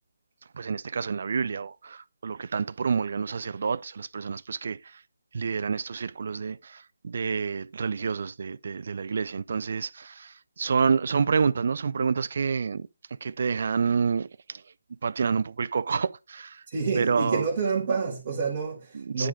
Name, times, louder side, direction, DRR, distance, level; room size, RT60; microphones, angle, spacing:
voice 1, 0.6-4.8 5.3-6.6 7.0-10.3 10.6-12.9 13.2-14.3 15.0-16.5 17.0-17.5 19.2-19.3, right 5 dB, 55° right, 0.3 m, -28 dB
voice 2, 16.7-19.3, right 4 dB, 35° right, 1.7 m, -28 dB
9.8 x 3.7 x 4.8 m
hypercardioid pair, 165°, 0 cm